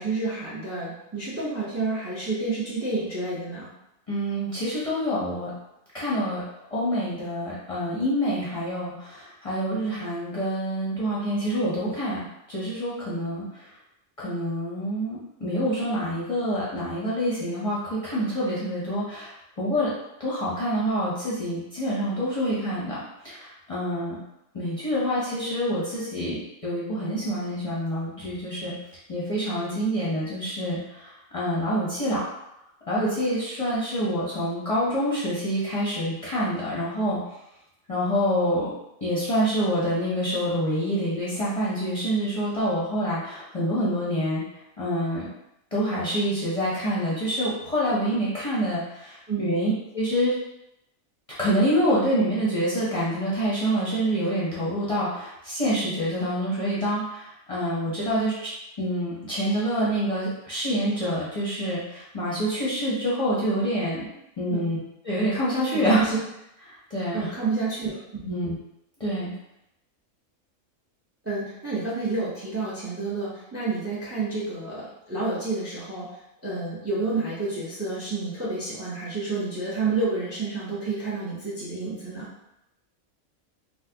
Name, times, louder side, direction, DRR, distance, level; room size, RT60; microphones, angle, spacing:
voice 1, 0.0-3.7 49.3-49.5 64.5-64.6 65.7-66.2 67.1-68.3 71.2-76.1 76.4-82.3, right 3 dB, 15° right, -7 dB, 0.6 m, -29 dB
voice 2, 4.1-5.5 5.9-6.4 6.7-12.2 12.5-13.7 14.2-19.9 20.2-23.0 23.2-24.2 24.5-28.7 29.1-32.2 32.9-37.2 37.9-38.7 39.0-44.4 44.8-45.3 45.7-50.3 51.4-58.5 58.8-64.1 64.4-64.8 65.0-66.1 66.7-67.3 68.2-68.6 69.0-69.3, equal, 30° left, -9 dB, 0.7 m, -26 dB
4.0 x 2.1 x 2.8 m, 0.84 s
omnidirectional pair, 1.4 m